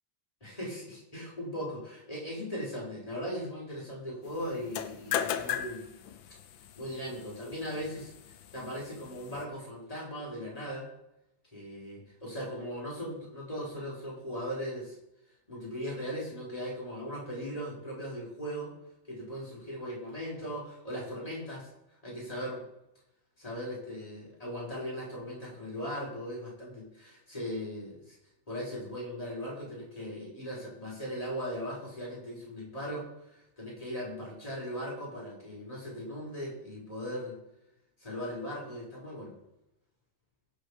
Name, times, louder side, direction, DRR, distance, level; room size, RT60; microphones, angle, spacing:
voice 1, 0.4-5.9 6.8-8.1 8.5-10.9 11.5-15.0 15.5-18.7 19.1-21.7 22.0-22.6 23.4-28.2 28.5-37.4 38.0-39.3, equal, 15° left, -5 dB, 6.2 m, -38 dB
sound 1, 4.6-9.4, left 9 dB, 90° left, 1.7 m, -37 dB
22.0 x 8.8 x 5.2 m, 0.87 s
omnidirectional pair, 2.1 m